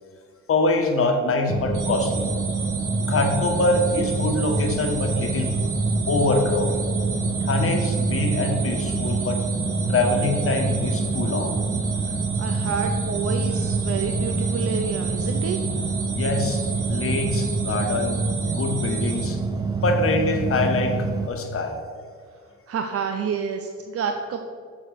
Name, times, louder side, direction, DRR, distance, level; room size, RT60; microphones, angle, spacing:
voice 1, 0.5-2.3 3.1-5.6 6.1-6.8 7.4-9.4 9.9-11.5 16.1-16.6 16.9-18.2 18.5-19.4 19.8-21.8, left 2 dB, 45° left, 3 dB, 1.5 m, -24 dB
sound 1, 1.5-21.3, right 4 dB, 15° right, 0.6 m, -26 dB
sound 2, 1.7-19.2, right 4 dB, 80° right, 2.0 m, -34 dB
voice 2, 12.1-15.6 22.7-24.4, right 6 dB, 50° right, 5 dB, 0.7 m, -29 dB
7.6 x 6.5 x 5.9 m, 2.1 s
cardioid pair, 90°, 30 cm